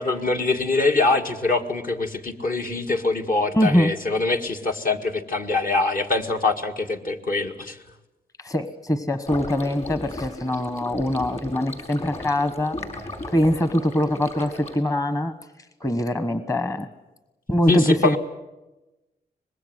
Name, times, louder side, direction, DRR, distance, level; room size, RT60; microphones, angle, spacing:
voice 1, 0.0-7.8 17.7-18.2, left 3 dB, 55° left, 3 dB, 2.1 m, -23 dB
voice 2, 3.5-3.9 8.4-12.8 13.3-15.3 15.8-16.9 17.5-18.2, left 1 dB, 20° left, 11 dB, 1.3 m, -23 dB
sound 1, 9.2-14.7, left 1 dB, 40° left, 5.2 m, -36 dB
24.5 x 21.0 x 8.0 m, 1.0 s
wide cardioid pair, 95°, 17 cm